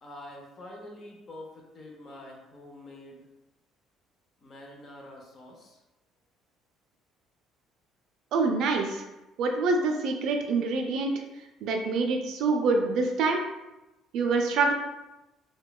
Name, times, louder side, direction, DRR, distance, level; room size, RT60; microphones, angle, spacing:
voice 1, 0.0-3.3 4.4-5.8, left 1 dB, 35° left, 0 dB, 0.5 m, -46 dB
voice 2, 8.3-9.0 9.4-11.1 11.6-13.4 14.1-14.7, right 3 dB, 65° right, 3 dB, 0.3 m, -26 dB
3.0 x 2.1 x 2.2 m, 0.99 s
cardioid pair, 150°, 0 cm